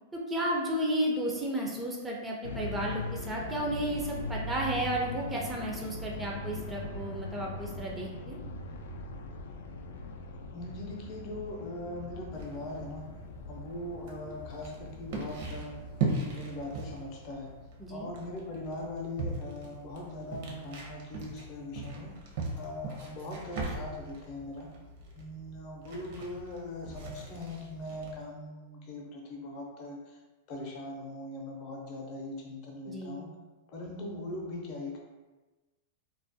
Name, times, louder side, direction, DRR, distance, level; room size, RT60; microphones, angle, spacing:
voice 1, 0.1-8.4 17.8-18.1 32.9-33.2, right 1 dB, 10° right, -2 dB, 0.3 m, -33 dB
sound 1, 2.4-16.7, left 1 dB, 85° left, 0.3 m, -41 dB
voice 2, 10.5-13.1 13.5-15.8 16.2-17.5 17.9-22.2 22.6-24.7 25.1-30.2 30.5-33.3 33.7-35.0, left 1 dB, 40° left, -1 dB, 0.6 m, -40 dB
sound 2, 12.3-28.2, right 3 dB, 60° right, 0.6 m, -40 dB
2.3 x 2.0 x 2.6 m, 1.2 s
supercardioid pair, 145°, 0 cm